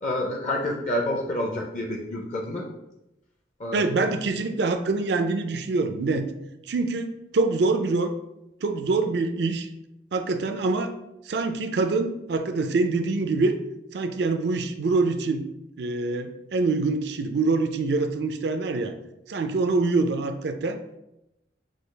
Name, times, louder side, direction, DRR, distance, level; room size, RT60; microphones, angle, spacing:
voice 1, 0.0-2.7 3.6-3.8, left 1 dB, 40° left, 0 dB, 0.6 m, -28 dB
voice 2, 3.7-6.3 6.7-8.1 8.6-9.7 10.1-10.9 11.3-13.6 13.9-15.4 15.8-19.0 19.3-20.8, right 3 dB, 65° right, 8 dB, 0.4 m, -25 dB
6.2 x 2.3 x 3.3 m, 0.87 s
head